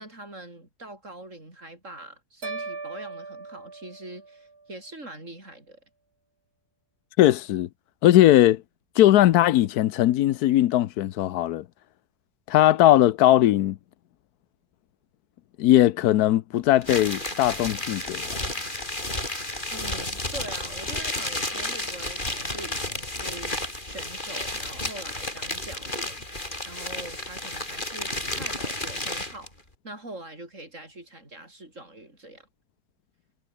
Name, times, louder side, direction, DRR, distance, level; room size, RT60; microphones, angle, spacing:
voice 1, 0.0-5.8 19.7-26.3 26.6-29.5 29.8-32.5, right 2 dB, 55° right, 7.2 m, -43 dB
sound 1, 2.4-4.7, right 3 dB, 80° right, 4.1 m, -38 dB
voice 2, 7.2-7.7 8.0-8.6 9.0-11.6 12.5-13.8 15.6-18.4, left 13 dB, 85° left, 1.2 m, -19 dB
sound 2, 16.8-29.5, left 1 dB, 30° left, 5.3 m, -32 dB
omnidirectional pair, 1.6 m